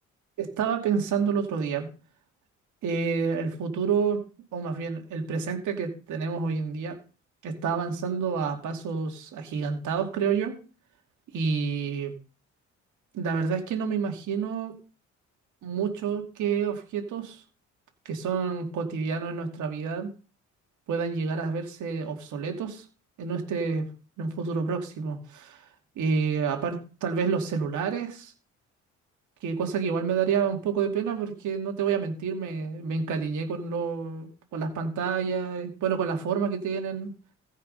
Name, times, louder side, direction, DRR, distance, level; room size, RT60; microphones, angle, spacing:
voice 1, 0.4-1.9 2.8-4.2 4.5-7.0 7.4-10.5 11.3-12.1 13.1-14.7 15.6-17.4 18.0-20.1 20.9-22.8 23.2-23.9 24.2-25.6 26.0-28.3 29.4-37.1, right 6 dB, 75° right, 3 dB, 2.6 m, -29 dB
15.5 x 5.5 x 5.4 m, 0.35 s
cardioid pair, 90°, 30 cm